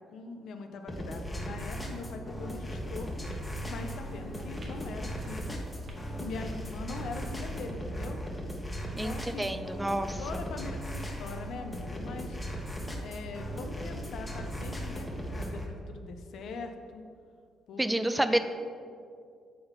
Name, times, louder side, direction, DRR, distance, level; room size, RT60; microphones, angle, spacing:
voice 1, 0.1-3.1 3.7-5.6 6.2-8.2 8.9-9.6 10.2-12.4 13.0-17.0 17.7-17.8 18.1-18.4, left 4 dB, 70° left, 5 dB, 0.7 m, -42 dB
sound 1, 0.9-15.6, equal, 15° left, 1.3 m, -37 dB
sound 2, 2.7-7.8, equal, 40° right, 1.2 m, -48 dB
voice 2, 9.0-10.2 17.8-18.4, right 1 dB, 10° right, 10 dB, 0.4 m, -29 dB
7.6 x 3.9 x 5.6 m, 2.2 s
cardioid pair, 90°, 0 cm